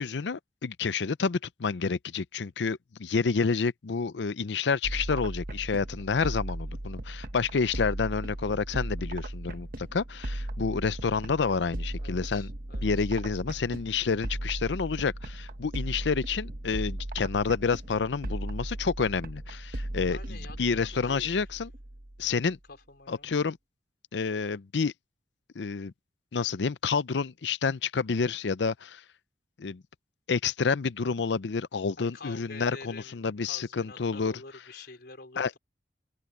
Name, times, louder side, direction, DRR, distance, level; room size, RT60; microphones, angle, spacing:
voice 1, 0.0-12.5 12.8-21.7 22.2-22.6 23.1-23.6 24.1-24.9 25.6-25.9 26.3-29.0 29.6-29.8 30.3-34.3 35.4-35.5, left 5 dB, 85° left, 0.6 m, -29 dB
sound 1, 4.8-22.4, right 1 dB, 55° right, 1.3 m, -37 dB
voice 2, 12.0-13.1 20.1-21.4 22.7-23.3 32.0-35.6, left 3 dB, 65° left, 4.5 m, -47 dB
open air
head